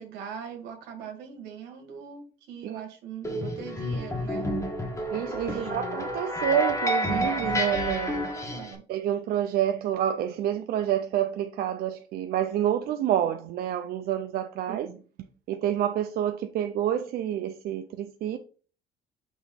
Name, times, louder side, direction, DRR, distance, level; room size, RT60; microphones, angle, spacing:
voice 1, 0.0-4.5 5.5-6.0 8.1-8.8 14.7-15.0, right 7 dB, 90° right, 1.6 m, -41 dB
sound 1, 3.2-8.7, equal, 15° left, 1.4 m, -29 dB
voice 2, 5.1-8.1 8.9-14.9 15.5-18.4, right 10 dB, 65° right, 0.5 m, -28 dB
6.2 x 3.0 x 5.2 m
cardioid pair, 110°, 17 cm